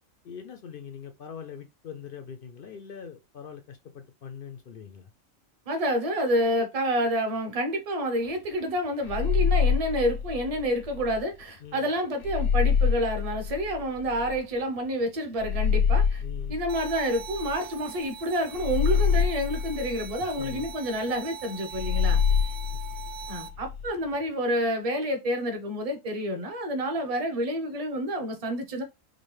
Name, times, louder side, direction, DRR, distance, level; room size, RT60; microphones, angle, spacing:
voice 1, 0.2-5.1 11.6-11.9 16.2-16.6 20.2-20.7 22.7-22.8, left 7 dB, 65° left, 0.5 m, -42 dB
voice 2, 5.7-16.2 16.5-22.2 23.3-28.8, equal, 30° right, 0.8 m, -28 dB
sound 1, 9.0-11.2 12.2-14.4 15.4-17.7 18.5-20.7 21.7-23.9, left 6 dB, 80° left, 1.0 m, -26 dB
sound 2, 16.7-23.5, right 6 dB, 85° right, 1.1 m, -42 dB
5.0 x 2.2 x 3.2 m
omnidirectional pair, 1.4 m